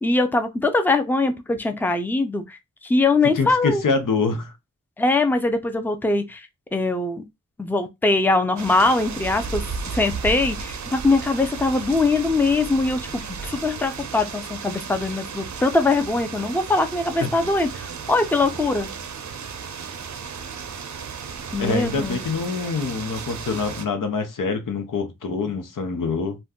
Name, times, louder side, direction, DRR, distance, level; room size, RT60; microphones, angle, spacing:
voice 1, 0.0-3.8 5.0-7.3 7.6-18.9 21.5-22.2, left 3 dB, 5° left, 0.5 m, -22 dB
voice 2, 3.4-4.5 17.2-17.3 21.6-26.4, left 4 dB, 85° left, 0.7 m, -25 dB
sound 1, 8.6-23.9, right 5 dB, 65° right, 0.5 m, -34 dB
2.5 x 2.2 x 3.5 m
wide cardioid pair, 70°, 31 cm